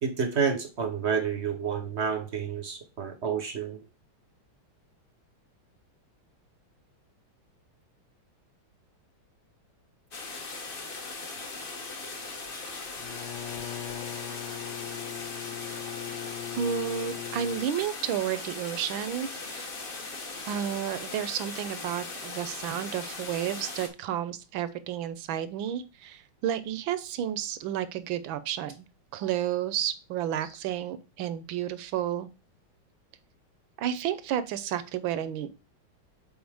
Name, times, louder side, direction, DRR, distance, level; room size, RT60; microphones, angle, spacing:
voice 1, 0.0-3.8, right 6 dB, 55° right, 6 dB, 0.8 m, -29 dB
sound 1, 10.1-23.9, left 3 dB, 45° left, 0.7 m, -39 dB
Bowed string instrument, 13.0-17.8, left 14 dB, 70° left, 1.2 m, -39 dB
voice 2, 16.6-19.7 20.4-28.9 29.1-32.3 33.8-35.5, right 10 dB, 75° right, 14 dB, 1.4 m, -31 dB
7.9 x 4.2 x 3.4 m, 0.31 s
omnidirectional pair, 2.2 m